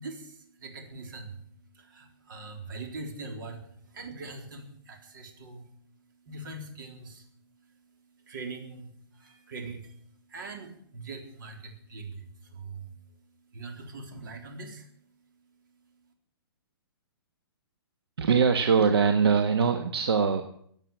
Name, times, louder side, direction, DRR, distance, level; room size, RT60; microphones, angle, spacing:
voice 1, 0.0-15.0, right 3 dB, 55° right, 3 dB, 3.9 m, -43 dB
voice 2, 18.2-20.4, right 6 dB, 80° right, 6 dB, 1.5 m, -22 dB
15.5 x 9.0 x 8.6 m, 0.66 s
hypercardioid pair, 165°, 13 cm